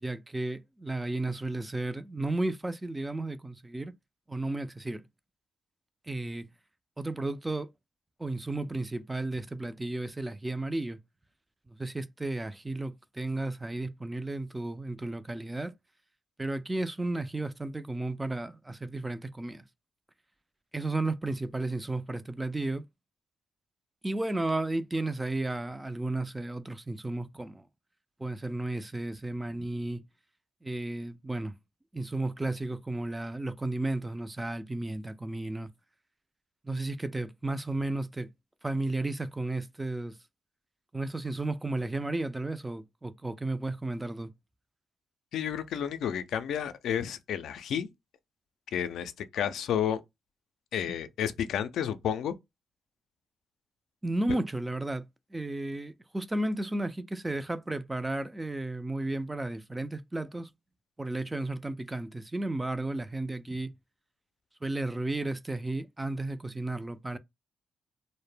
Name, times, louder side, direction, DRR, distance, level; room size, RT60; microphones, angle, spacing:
voice 1, 0.0-3.9 4.3-5.0 6.1-6.5 7.0-7.7 8.2-11.0 11.7-15.7 16.4-19.6 20.7-22.8 24.0-27.6 28.2-30.0 30.6-31.5 31.9-35.7 36.6-38.3 38.6-40.1 40.9-44.3 54.0-55.1 55.3-60.5 61.0-63.7 64.6-67.2, right 2 dB, 15° right, 0.3 m, -33 dB
voice 2, 45.3-47.9 48.7-50.0 50.7-52.4, left 9 dB, 75° left, 0.3 m, -31 dB
2.1 x 2.0 x 3.1 m
supercardioid pair, 65°, 0 cm